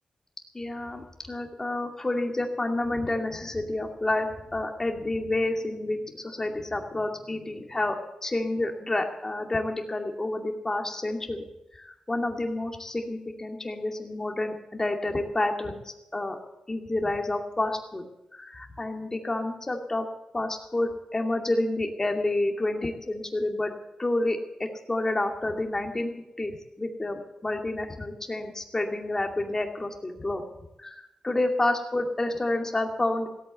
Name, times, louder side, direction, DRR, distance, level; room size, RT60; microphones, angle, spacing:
voice 1, 0.5-11.5 11.7-16.4 16.7-18.0 18.3-20.1 20.3-23.7 24.0-26.1 26.4-26.5 26.8-30.4 30.8-33.3, left 2 dB, 25° left, 3 dB, 2.4 m, -29 dB
17.0 x 8.6 x 8.0 m, 0.88 s
cardioid pair, 80°, 2 cm